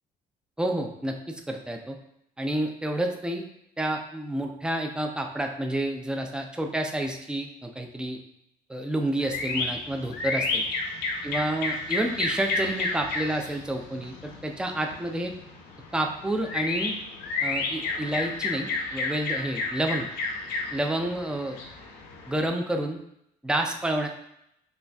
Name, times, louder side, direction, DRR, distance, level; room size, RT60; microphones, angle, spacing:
voice 1, 0.6-2.0 2.4-3.4 3.8-8.2 8.7-10.6 11.2-15.3 15.9-17.0 17.4-20.1 20.7-21.6 22.3-23.0 23.4-24.1, right 1 dB, 5° right, 3 dB, 0.4 m, -29 dB
sound 1, 9.2-22.5, left 3 dB, 75° left, 0.8 m, -32 dB
6.6 x 2.4 x 2.3 m, 0.77 s
cardioid pair, 110°, 17 cm